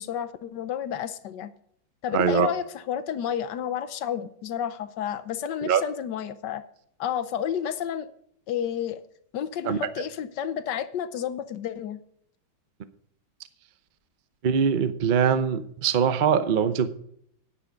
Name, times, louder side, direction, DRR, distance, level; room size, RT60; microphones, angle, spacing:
voice 1, 0.0-1.5 2.0-6.6 7.0-8.1 8.5-9.0 9.3-12.0, left 9 dB, 70° left, 13 dB, 1.3 m, -31 dB
voice 2, 2.1-2.5 5.6-5.8 9.6-9.8 14.4-16.9, right 7 dB, 80° right, 12 dB, 0.4 m, -22 dB
9.9 x 9.9 x 5.1 m, 0.68 s
omnidirectional pair, 2.1 m